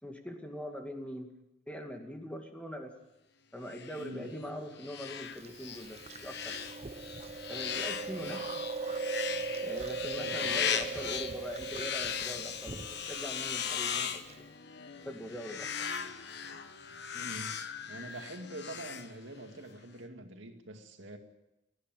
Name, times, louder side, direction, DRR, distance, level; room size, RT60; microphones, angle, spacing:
voice 1, 0.0-1.3 1.7-2.9 3.5-6.6 7.5-8.6 9.6-14.5 15.0-15.9, equal, 5° left, 3 dB, 2.2 m, -42 dB
sound 1, 3.7-19.6, left 8 dB, 60° left, 1.3 m, -38 dB
voice 2, 4.0-4.3 8.2-8.3 10.2-10.5 17.1-17.6 17.9-21.2, right 1 dB, 75° right, 5 dB, 2.2 m, -45 dB
Chewing mastication, 5.4-14.3, right 4 dB, 35° right, 0.7 m, -40 dB
29.0 x 10.0 x 9.2 m, 0.94 s
head